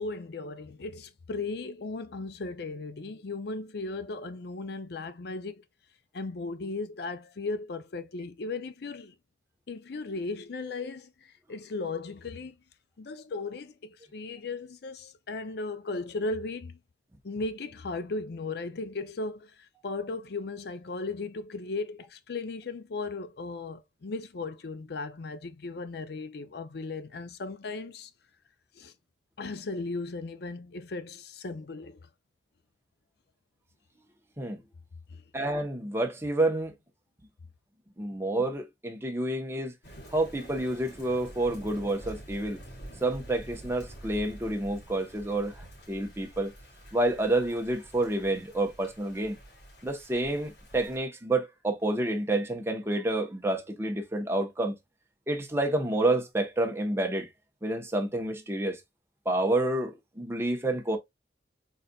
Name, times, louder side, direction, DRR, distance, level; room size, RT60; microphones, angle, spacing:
voice 1, 0.0-5.6 6.1-9.1 9.7-12.6 13.0-16.8 17.2-28.1 28.7-28.9 29.4-32.0, left 3 dB, 65° left, 0.5 m, -36 dB
voice 2, 35.3-36.7 38.0-39.7 40.1-42.6 43.0-46.5 46.9-49.4 49.8-54.8 55.3-57.3 57.6-58.8 59.2-61.0, right 2 dB, 15° right, 0.9 m, -29 dB
Thunder / Rain, 39.8-51.0, right 1 dB, 85° left, 2.7 m, -48 dB
4.1 x 3.9 x 2.3 m
head